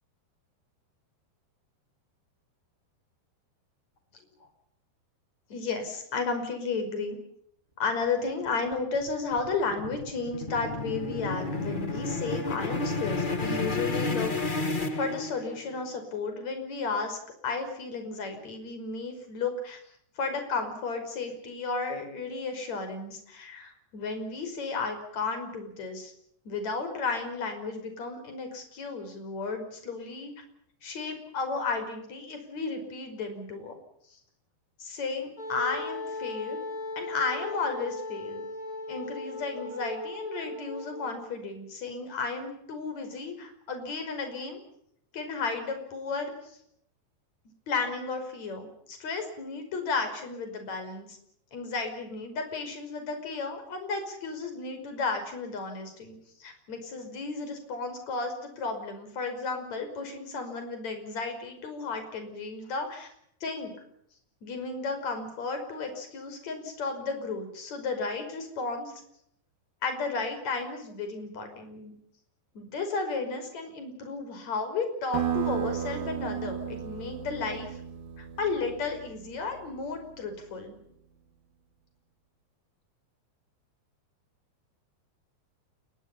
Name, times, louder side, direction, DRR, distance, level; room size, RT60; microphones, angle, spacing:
voice 1, 5.5-7.2 7.8-14.7 15.0-17.2 17.4-19.8 20.2-26.1 26.4-30.3 30.8-33.7 34.8-36.6 37.0-38.4 38.9-44.6 45.1-46.6 47.7-51.2 51.5-63.1 63.4-63.7 64.4-68.9 69.8-71.9 72.5-77.7 78.4-80.8, left 4 dB, 40° left, 7 dB, 6.5 m, -33 dB
sound 1, 8.5-15.7, left 3 dB, 90° left, 0.4 m, -31 dB
Wind instrument woodwind instrument, 35.4-41.3, left 2 dB, 20° left, 6.3 m, -37 dB
sound 2, 75.1-80.3, right 10 dB, 70° right, 3.9 m, -34 dB
29.0 x 22.5 x 5.7 m, 0.72 s
omnidirectional pair, 4.8 m